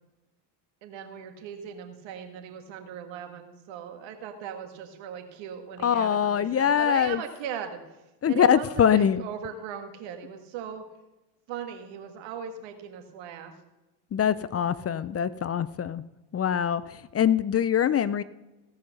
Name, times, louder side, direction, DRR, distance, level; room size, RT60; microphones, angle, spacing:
voice 1, 0.8-7.8 8.3-10.8 11.5-13.5, right 8 dB, 75° right, 6 dB, 1.8 m, -38 dB
voice 2, 5.8-7.2 8.2-9.2 14.1-16.0 16.3-18.2, left 8 dB, 35° left, 17 dB, 0.5 m, -23 dB
17.0 x 5.7 x 6.6 m, 1.0 s
supercardioid pair, 75°, 45 cm